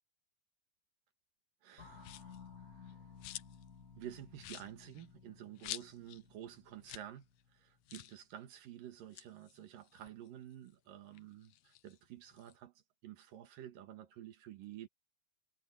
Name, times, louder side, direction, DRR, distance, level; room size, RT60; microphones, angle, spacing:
voice 1, 1.6-2.3 2.6-3.1 3.9-12.7 13.0-14.9, right 11 dB, 70° right, 3.0 m, -51 dB
sound 1, 1.8-8.1, left 6 dB, 25° left, 3.2 m, -57 dB
sound 2, 2.0-2.4 2.8-3.7 4.0-4.1 4.4-6.2 6.5-6.6 6.8-7.1 7.4-7.5 7.9-8.2 8.9-10.7 11.1-12.6, left 14 dB, 75° left, 1.9 m, -49 dB
omnidirectional pair, 4.4 m